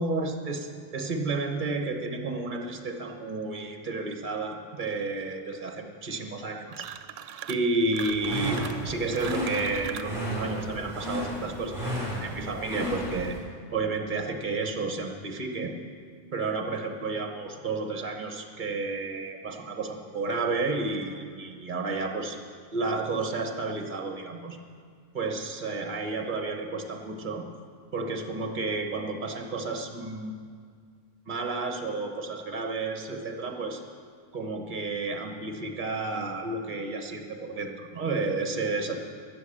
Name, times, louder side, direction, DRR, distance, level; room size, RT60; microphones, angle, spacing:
voice 1, 0.0-6.9 7.5-13.4 13.7-15.7 16.3-22.4 22.7-24.6 25.1-27.4 27.9-30.3 31.2-33.8 34.3-39.0, right 3 dB, 45° right, 4 dB, 1.2 m, -31 dB
sound 1, 6.7-7.7 7.9-10.2, right 10 dB, 85° right, 0.9 m, -40 dB
sound 2, 8.0-13.4, equal, 20° right, 4.0 m, -33 dB
13.0 x 7.2 x 8.5 m, 2.1 s
omnidirectional pair, 1.2 m